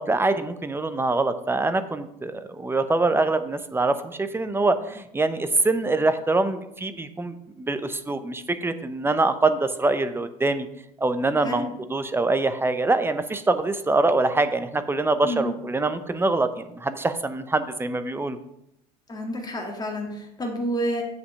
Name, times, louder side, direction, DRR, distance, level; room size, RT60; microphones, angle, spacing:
voice 1, 0.0-10.7 11.0-18.4, right 2 dB, 10° right, 10 dB, 0.7 m, -24 dB
voice 2, 11.4-11.7 15.2-15.6 19.1-21.0, equal, 20° left, 1 dB, 2.1 m, -29 dB
7.8 x 5.7 x 5.5 m, 0.79 s
figure-of-eight pair, 70°, 21 cm